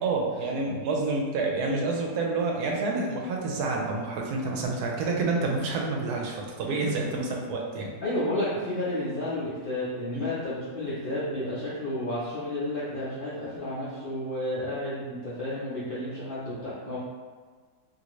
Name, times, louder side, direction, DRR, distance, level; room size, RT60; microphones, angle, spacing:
voice 1, 0.0-7.9 10.1-10.3, right 3 dB, 80° right, 0 dB, 1.1 m, -28 dB
voice 2, 8.0-17.0, left 1 dB, 60° left, -10 dB, 0.5 m, -31 dB
2.7 x 2.6 x 3.0 m, 1.5 s
omnidirectional pair, 1.7 m